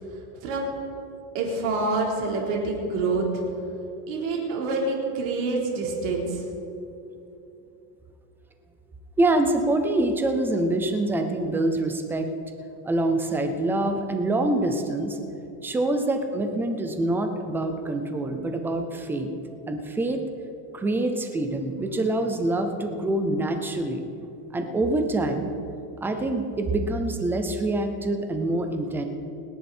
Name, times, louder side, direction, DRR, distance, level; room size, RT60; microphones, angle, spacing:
voice 1, 1.3-3.4 4.1-6.5, right 3 dB, 60° right, -1 dB, 4.0 m, -27 dB
voice 2, 9.2-12.3 12.8-15.2 15.6-19.3 19.7-20.2 20.7-24.0 24.5-25.5 26.0-29.0, right 2 dB, 5° right, 6 dB, 0.3 m, -25 dB
29.5 x 10.5 x 4.3 m, 2.8 s
cardioid pair, 175°, 42 cm